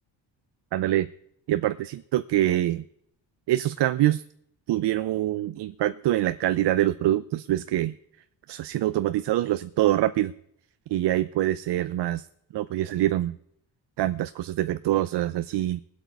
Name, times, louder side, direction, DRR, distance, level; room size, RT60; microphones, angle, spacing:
voice 1, 0.7-1.1 1.5-2.8 3.5-4.2 4.7-8.0 8.5-10.3 10.9-12.3 12.5-13.4 14.0-15.8, right 14 dB, 60° right, 13 dB, 0.6 m, -25 dB
20.0 x 8.1 x 4.6 m, 0.73 s
cardioid pair, 85°, 47 cm